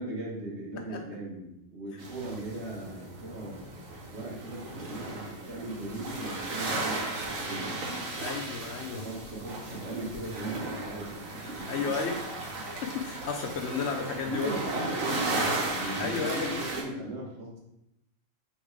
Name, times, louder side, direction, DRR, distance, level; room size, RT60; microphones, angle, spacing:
voice 1, 0.0-3.7 4.1-7.7 8.9-12.2 14.2-17.6, right 1 dB, 60° right, -2 dB, 1.3 m, -38 dB
sound 1, 2.0-16.8, right 2 dB, 90° right, 1.3 m, -35 dB
voice 2, 8.2-9.1 11.7-12.2 12.8-14.6 16.0-16.6, left 5 dB, 65° left, 3 dB, 0.8 m, -33 dB
3.4 x 3.2 x 4.7 m, 0.84 s
omnidirectional pair, 1.4 m